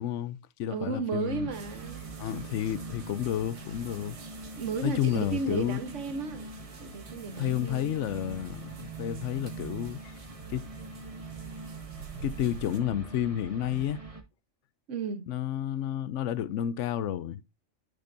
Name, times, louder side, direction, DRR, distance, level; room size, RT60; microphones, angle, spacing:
voice 1, 0.0-1.5 2.2-4.2 4.8-5.8 7.3-10.2 10.5-10.7 12.2-14.0 15.3-17.4, left 11 dB, 70° left, 0.9 m, -31 dB
voice 2, 0.7-2.0 4.5-6.4 6.8-8.0 14.9-15.3, right 4 dB, 65° right, 1.3 m, -34 dB
sound 1, 1.2-14.2, right 3 dB, 25° right, 1.2 m, -43 dB
sound 2, 1.5-12.8, right 5 dB, 85° right, 1.6 m, -49 dB
10.5 x 5.1 x 2.6 m
omnidirectional pair, 1.4 m